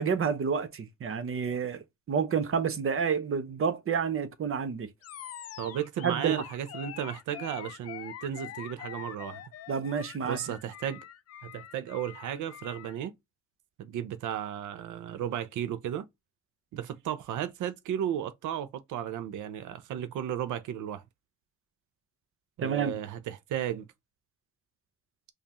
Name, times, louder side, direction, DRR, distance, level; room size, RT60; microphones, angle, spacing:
voice 1, 0.0-4.9 6.0-6.4 9.7-10.4 22.6-23.0, right 6 dB, 45° right, 0.8 m, -29 dB
Animal, 5.0-13.0, left 11 dB, 55° left, 0.5 m, -44 dB
voice 2, 5.6-9.4 10.2-11.0 11.4-13.1 13.8-16.0 16.7-21.0 22.6-23.9, right 10 dB, 80° right, 0.7 m, -34 dB
5.2 x 2.1 x 3.0 m
cardioid pair, 90°, 30 cm